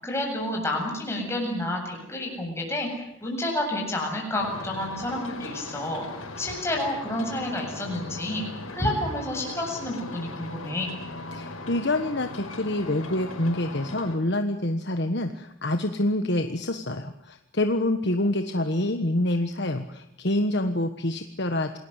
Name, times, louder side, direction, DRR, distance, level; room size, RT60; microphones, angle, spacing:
voice 1, 0.0-8.4 8.7-10.9, left 1 dB, 10° left, 0 dB, 7.9 m, -30 dB
sound 1, 4.4-14.2, left 2 dB, 85° left, 5.2 m, -39 dB
voice 2, 11.3-21.8, left 1 dB, 55° left, 7 dB, 1.4 m, -27 dB
28.5 x 20.0 x 8.2 m, 0.80 s
head